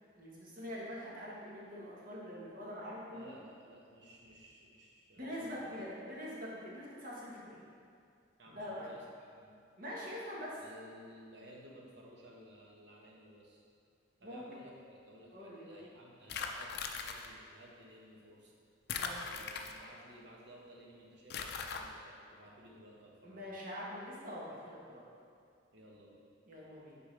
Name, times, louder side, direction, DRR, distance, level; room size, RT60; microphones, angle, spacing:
voice 1, 0.2-3.3 5.2-7.7 8.5-8.9 9.8-10.6 14.2-14.4 15.3-15.8 18.9-19.3 23.2-25.0 26.5-27.0, equal, 50° right, -5 dB, 1.3 m, -44 dB
voice 2, 3.1-5.3 5.6-5.7 8.4-9.0 9.4-9.6 10.4-13.6 14.2-18.5 19.2-23.5 25.7-26.3, equal, 65° right, -2 dB, 1.0 m, -56 dB
sound 1, 16.3-17.3 18.9-20.0 21.3-21.8, left 6 dB, 60° left, 0.4 m, -39 dB
6.9 x 4.5 x 3.3 m, 2.3 s
head